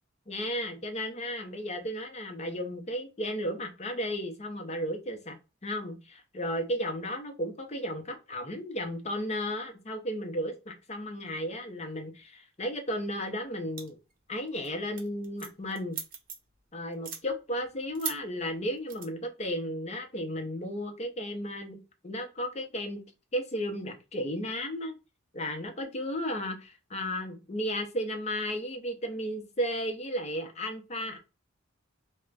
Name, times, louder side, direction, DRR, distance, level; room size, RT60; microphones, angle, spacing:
voice 1, 0.3-5.4 5.6-14.0 14.3-16.0 16.7-23.0 23.3-25.0 25.3-31.2, equal, 35° left, 4 dB, 0.7 m, -34 dB
sound 1, 13.8-14.1 14.5-14.7 15.0-16.6 16.9-17.2 18.0-18.2 18.9-19.1, right 7 dB, 45° right, 0.7 m, -37 dB
2.4 x 2.1 x 3.2 m, 0.29 s
head